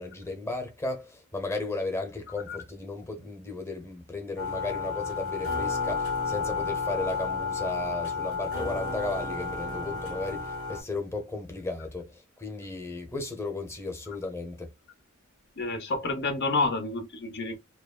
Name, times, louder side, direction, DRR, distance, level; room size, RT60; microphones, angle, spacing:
voice 1, 0.0-14.7, left 3 dB, 15° left, 0.9 m, -35 dB
sound 1, 4.4-10.8, left 4 dB, 70° left, 2.1 m, -31 dB
voice 2, 15.6-17.6, left 3 dB, 50° left, 0.9 m, -29 dB
4.7 x 2.2 x 2.4 m
head